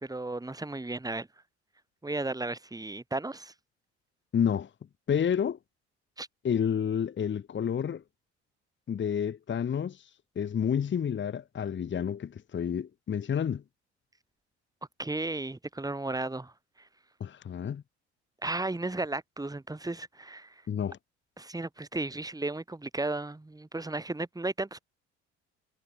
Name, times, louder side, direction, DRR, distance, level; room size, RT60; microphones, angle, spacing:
voice 1, 0.0-1.3 2.0-3.5 6.2-6.3 15.0-16.5 18.4-20.5 21.4-24.8, right 2 dB, 10° right, 2.7 m, -34 dB
voice 2, 4.3-4.7 5.1-5.6 6.4-8.0 8.9-13.6 17.2-17.8 20.7-21.0, left 8 dB, 35° left, 1.2 m, -30 dB
hypercardioid pair, 60°, 34 cm